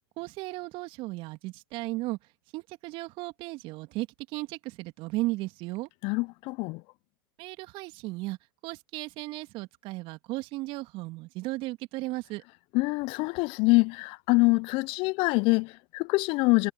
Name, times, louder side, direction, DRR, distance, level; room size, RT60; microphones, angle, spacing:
voice 1, 0.2-2.2 2.5-4.1 4.3-5.9 7.4-8.4 8.6-12.4, right 20 dB, 45° right, 2.5 m, -35 dB
voice 2, 6.0-6.8 12.7-16.7, left 26 dB, 45° left, 0.9 m, -25 dB
hypercardioid pair, 95°, 12 cm